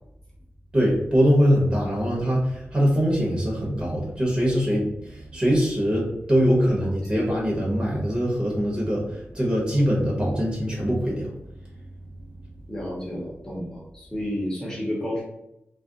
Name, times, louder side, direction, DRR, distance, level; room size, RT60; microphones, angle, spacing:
voice 1, 0.7-11.3, equal, 25° right, -4 dB, 0.9 m, -22 dB
voice 2, 6.6-7.2 12.7-15.2, equal, 15° left, -4 dB, 0.7 m, -32 dB
2.4 x 2.1 x 3.8 m, 0.82 s
wide cardioid pair, 160°, 4 cm